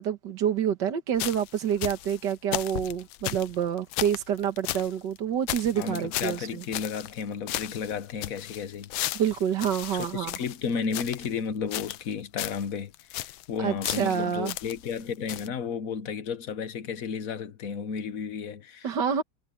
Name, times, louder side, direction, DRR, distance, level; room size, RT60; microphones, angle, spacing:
voice 1, 0.0-6.6 9.2-10.3 13.6-14.5 18.8-19.2, right 8 dB, 60° right, 1.9 m, -27 dB
sound 1, 1.2-4.9 5.2-5.3 5.5-7.2 7.5-11.3 11.7-12.1 12.4-12.7 12.9-13.5 13.8-15.0 15.3-15.5, left 15 dB, 80° left, 1.4 m, -35 dB
voice 2, 5.7-8.9 9.9-18.9, left 6 dB, 50° left, 1.3 m, -33 dB
omnidirectional pair, 2.2 m